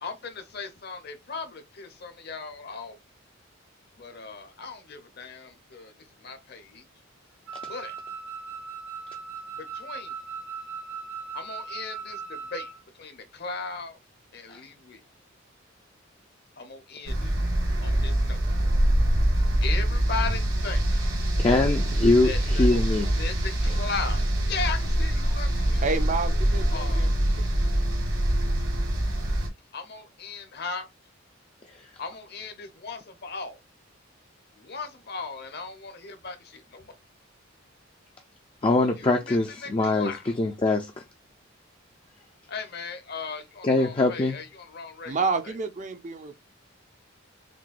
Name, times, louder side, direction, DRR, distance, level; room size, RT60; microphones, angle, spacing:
voice 1, 0.0-3.0 4.0-5.9 6.2-6.8 7.6-7.9 9.6-10.1 11.3-14.0 14.3-15.0 16.6-17.3 17.8-18.4 19.6-20.8 22.2-22.9 23.2-25.9 26.7-27.1 29.7-30.9 32.0-33.6 34.5-36.9 39.0-40.3 42.5-45.5, left 4 dB, 50° left, 0.8 m, -37 dB
Wind instrument woodwind instrument, 7.5-12.8, right 5 dB, 85° right, 1.2 m, -38 dB
sound 1, 17.1-29.5, right 1 dB, 65° right, 1.3 m, -24 dB
voice 2, 21.4-23.1 38.6-40.1 40.4-40.9 43.6-44.4, left 2 dB, 25° left, 0.4 m, -22 dB
voice 3, 22.7-23.2 23.7-23.8 25.8-27.1 45.1-46.3, right 4 dB, 35° right, 0.5 m, -30 dB
6.0 x 2.3 x 2.4 m
head